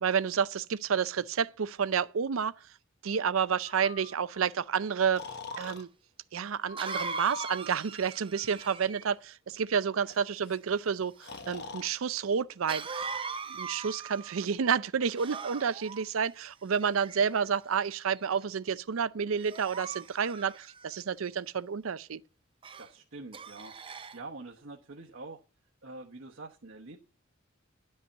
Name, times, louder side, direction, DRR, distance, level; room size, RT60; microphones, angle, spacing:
voice 1, 0.0-2.5 3.0-5.2 5.6-5.9 6.3-13.1 13.5-22.2, right 6 dB, 85° right, 0.5 m, -30 dB
Breathing, 3.7-4.4 5.2-5.8 6.7-7.6 8.5-8.9 10.1-10.2 10.4-10.6 11.2-11.9, left 2 dB, 55° left, 1.1 m, -41 dB
Cough, 5.7-5.8 6.8-9.1 12.7-14.4 15.1-16.0 16.8-17.5 18.1-18.4 19.4-21.0 22.6-22.9 23.3-24.2, right 5 dB, 25° right, 0.5 m, -40 dB
voice 2, 22.8-25.4 25.8-27.0, right 2 dB, 70° right, 1.1 m, -46 dB
11.5 x 5.5 x 7.2 m
head